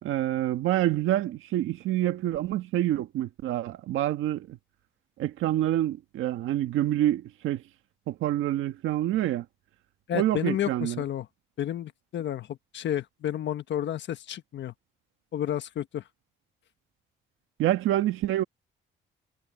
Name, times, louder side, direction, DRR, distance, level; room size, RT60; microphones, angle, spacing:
voice 1, 0.0-4.6 5.2-7.6 8.1-9.4 10.1-11.0 17.6-18.4, right 13 dB, 85° right, 1.6 m, -27 dB
voice 2, 10.1-11.3 11.6-14.7 15.3-16.0, left 11 dB, 65° left, 1.4 m, -31 dB
cardioid pair, 90°, 20 cm